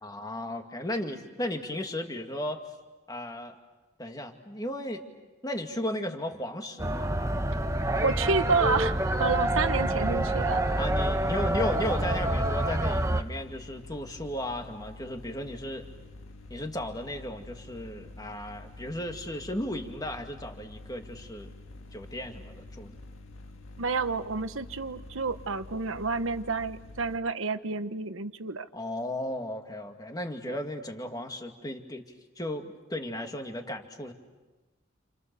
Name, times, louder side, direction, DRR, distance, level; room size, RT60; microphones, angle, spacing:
voice 1, 0.0-2.6 3.1-3.5 4.0-5.0 5.4-7.1 10.8-15.8 16.5-21.5 21.9-23.0 28.7-32.0 32.4-34.1, left 1 dB, 20° left, 4 dB, 2.1 m, -35 dB
sound 1, 6.8-13.2, right 1 dB, 15° right, 1.0 m, -27 dB
voice 2, 8.0-10.6 23.8-28.6 30.5-30.6, right 4 dB, 85° right, 10 dB, 1.2 m, -29 dB
sound 2, 10.6-27.2, left 2 dB, 90° left, 1.8 m, -47 dB
29.5 x 28.5 x 6.9 m, 1.2 s
head